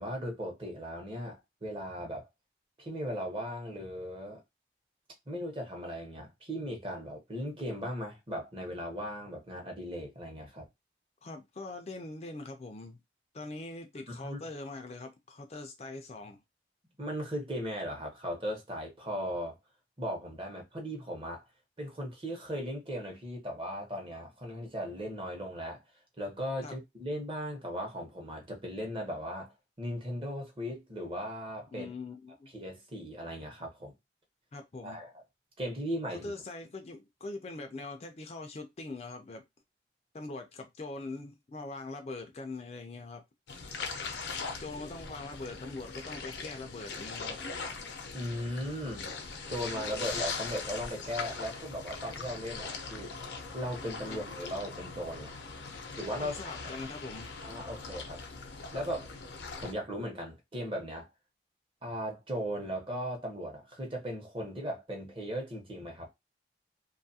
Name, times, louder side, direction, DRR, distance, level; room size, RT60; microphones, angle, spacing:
voice 1, 0.0-2.2 2.8-4.4 5.3-10.7 14.1-14.4 17.0-19.6 20.0-21.4 21.8-25.8 26.2-29.5 29.8-31.9 32.5-33.9 34.8-35.1 35.6-36.3 48.1-49.1 49.5-53.1 53.5-55.5 56.0-56.5 57.4-58.2 58.7-59.1 59.6-61.1 61.8-66.1, equal, 30° right, 0.8 m, -37 dB
voice 2, 11.2-13.0 13.3-16.4 26.6-26.8 31.7-32.5 34.5-35.0 36.2-39.4 40.1-43.2 44.6-47.4 54.1-54.2 56.2-57.4, left 3 dB, 35° left, 0.4 m, -42 dB
sound 1, 43.5-59.7, left 4 dB, 85° left, 0.6 m, -40 dB
2.6 x 2.4 x 2.7 m
head